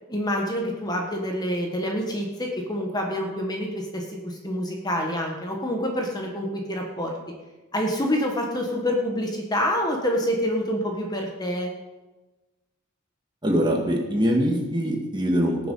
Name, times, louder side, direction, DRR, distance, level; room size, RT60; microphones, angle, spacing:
voice 1, 0.1-7.2 7.7-11.7, equal, 20° left, 1 dB, 1.4 m, -27 dB
voice 2, 13.4-15.7, equal, 20° right, 1 dB, 1.9 m, -23 dB
19.0 x 7.0 x 5.5 m, 1.2 s
head